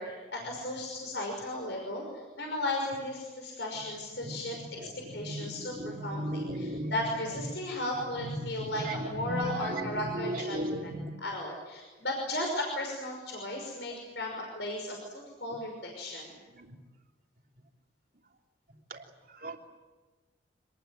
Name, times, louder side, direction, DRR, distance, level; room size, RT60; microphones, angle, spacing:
voice 1, 0.0-2.0 2.4-4.6 5.1-10.9 11.2-16.3, left 1 dB, 70° left, 1 dB, 5.7 m, -35 dB
voice 2, 4.2-6.9 8.0-11.1 15.5-15.6 16.6-16.8 18.9-19.0 19.3-19.6, right 1 dB, 50° right, 2 dB, 3.1 m, -36 dB
26.5 x 20.5 x 9.3 m, 1.3 s
head